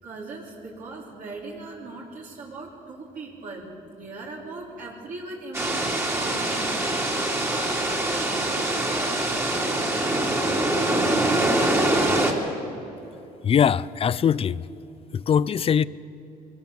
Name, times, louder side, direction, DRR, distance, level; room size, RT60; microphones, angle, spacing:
voice 1, 0.0-6.8 8.1-9.2, right 3 dB, 55° right, -4 dB, 3.5 m, -39 dB
sound 1, 5.5-12.3, right 1 dB, 15° right, 2.8 m, -24 dB
voice 2, 13.4-14.7 15.1-15.9, left 8 dB, 35° left, 20 dB, 0.5 m, -21 dB
23.0 x 17.5 x 7.0 m, 2.9 s
cardioid pair, 110°, 17 cm